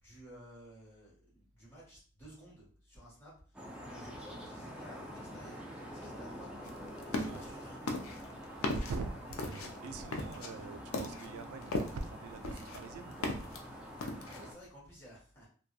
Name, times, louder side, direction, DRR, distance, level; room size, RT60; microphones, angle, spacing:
voice 1, 0.0-3.3 3.8-5.6 5.9-6.5 7.0-7.9 14.2-15.5, equal, 10° left, -8 dB, 1.2 m, -54 dB
sound 1, 3.5-14.5, equal, 5° right, 0.3 m, -47 dB
sound 2, 6.6-7.5 7.9-12.1 12.4-13.6 14.0-14.5, left 2 dB, 90° left, 0.4 m, -37 dB
voice 2, 8.6-13.5, right 3 dB, 90° right, 8 dB, 0.3 m, -43 dB
2.7 x 2.2 x 2.2 m, 0.42 s
head